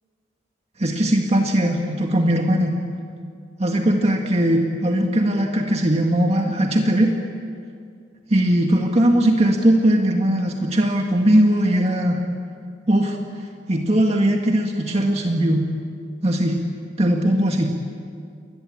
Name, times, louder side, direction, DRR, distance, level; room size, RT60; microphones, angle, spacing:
voice 1, 0.8-2.7 3.6-7.1 8.3-12.2 12.9-13.2 13.7-15.7 16.2-16.6 17.0-17.7, right 1 dB, 35° right, 2 dB, 1.9 m, -19 dB
28.5 x 22.0 x 8.7 m, 2.2 s
head